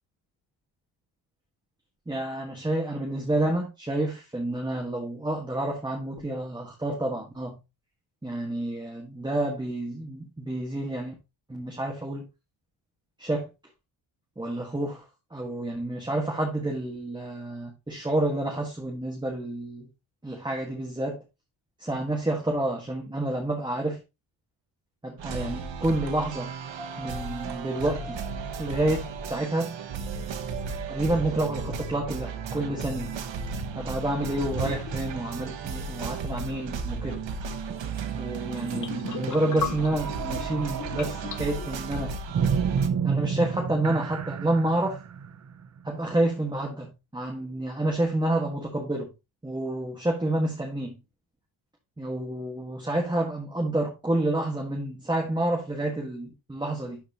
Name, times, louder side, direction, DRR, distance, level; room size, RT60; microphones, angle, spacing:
voice 1, 2.1-7.6 8.2-11.1 11.5-12.2 13.2-13.5 14.4-15.0 15.3-19.9 20.2-21.2 21.8-24.0 25.0-26.5 27.0-28.2 28.6-29.8 30.9-33.1 33.7-37.2 38.2-42.2 43.0-45.0 45.8-49.1 49.4-51.0 52.0-57.0, right 1 dB, 10° right, 1.3 m, -29 dB
sound 1, 25.2-42.9, right 5 dB, 65° right, 1.1 m, -35 dB
Porte cachot+prison, 32.5-38.3 38.6-38.9 39.8-46.5, right 6 dB, 35° right, 0.6 m, -33 dB
sound 2, 34.2-35.1 38.6-41.8, left 8 dB, 40° left, 0.9 m, -37 dB
12.0 x 4.1 x 2.8 m
wide cardioid pair, 140°, 49 cm